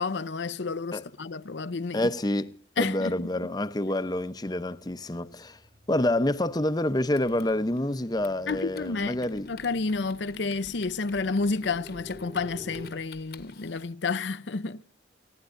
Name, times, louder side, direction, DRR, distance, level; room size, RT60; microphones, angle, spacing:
voice 1, 0.0-2.1 2.8-3.3 8.5-14.8, left 4 dB, 75° left, 0.7 m, -30 dB
voice 2, 1.9-5.6 5.9-9.5, left 1 dB, 20° left, 0.7 m, -28 dB
sound 1, 4.8-12.9, left 1 dB, 40° right, 2.9 m, -50 dB
Typing, 7.1-13.9, left 4 dB, 60° left, 1.3 m, -50 dB
29.0 x 16.0 x 2.6 m
head